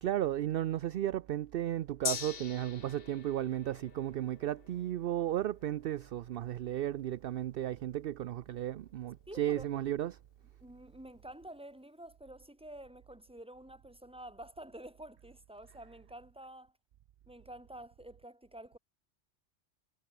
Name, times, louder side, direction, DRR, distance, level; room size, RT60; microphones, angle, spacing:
voice 1, 0.0-10.2, right 12 dB, 65° right, 0.7 m, -34 dB
Gong, 2.0-9.8 10.1-10.2, left 7 dB, 55° left, 1.2 m, -45 dB
voice 2, 9.3-9.7 10.6-16.7 17.3-18.8, right 1 dB, 5° right, 2.0 m, -49 dB
omnidirectional pair, 1.2 m